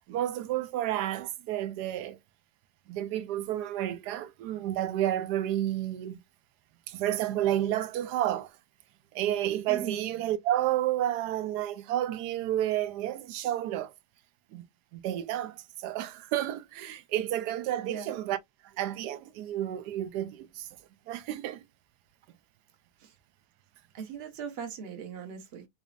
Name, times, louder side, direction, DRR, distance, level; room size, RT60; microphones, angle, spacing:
voice 1, 0.1-2.2 2.9-6.2 6.9-8.5 9.1-13.9 14.5-14.6 14.9-18.4 18.8-20.7 21.1-21.6, right 12 dB, 75° right, 1.1 m, -31 dB
voice 2, 9.7-10.0 17.9-18.1 23.0-23.2 23.9-25.7, right 7 dB, 40° right, 1.0 m, -39 dB
4.1 x 2.7 x 2.4 m
omnidirectional pair, 1.9 m